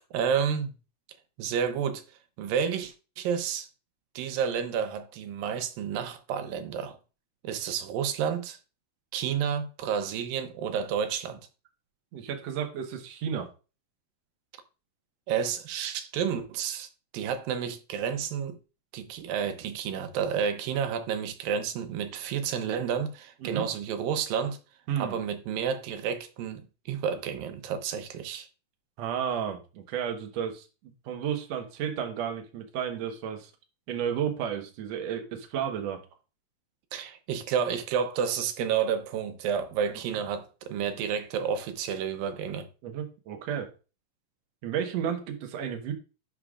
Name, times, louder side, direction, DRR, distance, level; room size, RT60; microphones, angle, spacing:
voice 1, 0.1-0.7 1.4-2.0 2.4-3.7 4.2-7.0 7.4-8.6 9.1-11.4 15.3-16.9 17.1-18.6 18.9-24.6 25.0-28.5 36.9-42.7, right 7 dB, 85° right, 2.6 m, -30 dB
voice 2, 12.1-13.5 23.4-23.7 24.9-25.2 29.0-33.5 33.9-36.0 42.8-43.7 44.6-45.9, right 8 dB, 60° right, 2.0 m, -32 dB
11.5 x 5.4 x 2.4 m
omnidirectional pair, 4.0 m